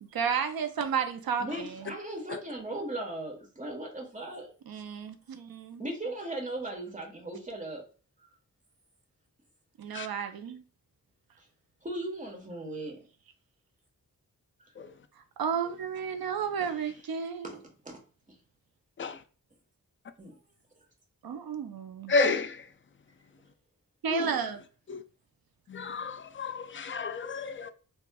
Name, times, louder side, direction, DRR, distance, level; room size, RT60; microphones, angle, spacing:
voice 1, 0.0-1.9 4.7-5.8 9.8-10.6 15.4-17.5 21.2-22.1 24.0-24.6, right 7 dB, 80° right, 0.6 m, -32 dB
voice 2, 1.4-4.5 5.8-7.8 11.8-13.0 14.6-14.7 16.6-16.7 17.4-17.6 17.8-18.0 20.2-20.4, right 1 dB, 20° right, 1.2 m, -37 dB
voice 3, 22.1-22.7 24.1-24.3 24.9-25.0 25.7-27.7, left 3 dB, 35° left, 0.4 m, -31 dB
4.1 x 2.3 x 2.3 m
wide cardioid pair, 70°, 35 cm